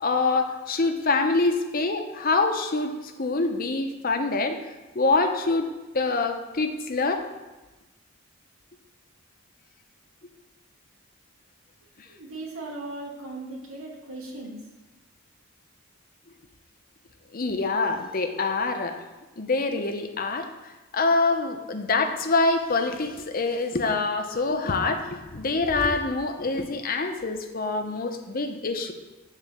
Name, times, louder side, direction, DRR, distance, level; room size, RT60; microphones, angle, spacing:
voice 1, 0.0-4.6 4.9-5.7 5.9-7.2 17.3-19.0 19.4-20.5 20.9-28.9, left 3 dB, 45° left, 6 dB, 0.8 m, -25 dB
voice 2, 12.1-14.6, right 2 dB, 90° right, -2 dB, 2.2 m, -38 dB
9.2 x 4.0 x 6.8 m, 1.1 s
head